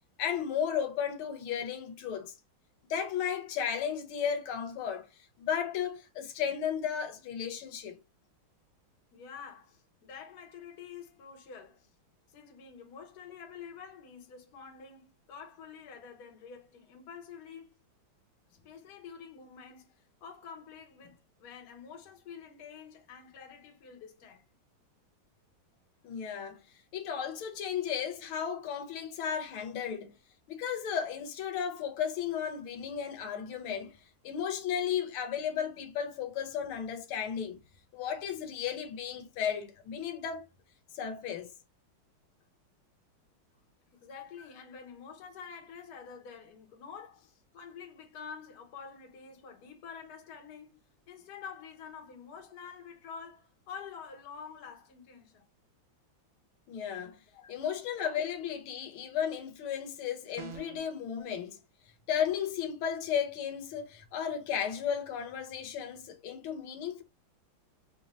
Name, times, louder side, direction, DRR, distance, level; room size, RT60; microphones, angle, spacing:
voice 1, 0.2-2.4 2.9-5.1 5.4-8.0 26.0-26.6 26.9-30.2 30.5-34.0 34.2-37.6 37.9-40.4 40.9-41.5 56.7-57.2 57.5-61.6 62.1-67.0, left 8 dB, 85° left, 1.6 m, -34 dB
voice 2, 9.1-11.9 12.3-17.8 18.6-24.4 43.9-55.4 57.3-57.6, left 6 dB, 55° left, 1.3 m, -48 dB
sound 1, 60.4-60.9, right 6 dB, 80° right, 1.6 m, -45 dB
4.3 x 2.7 x 3.0 m
omnidirectional pair, 2.3 m